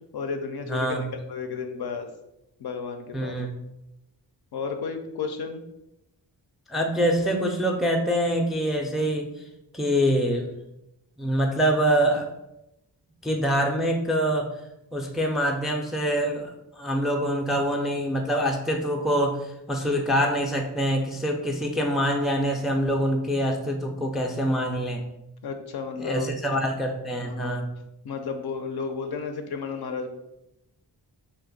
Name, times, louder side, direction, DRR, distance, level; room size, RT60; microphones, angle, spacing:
voice 1, 0.1-2.1 2.6-3.3 4.5-5.6 25.4-26.6 27.2-27.6 28.0-30.1, left 5 dB, 60° left, 5 dB, 0.5 m, -33 dB
voice 2, 0.7-1.1 3.1-3.5 6.7-9.4 9.7-10.5 11.2-12.3 13.2-14.5 14.9-25.0 26.0-27.7, equal, ahead, 2 dB, 0.4 m, -25 dB
2.5 x 2.2 x 3.9 m, 0.88 s
cardioid pair, 45°, 45 cm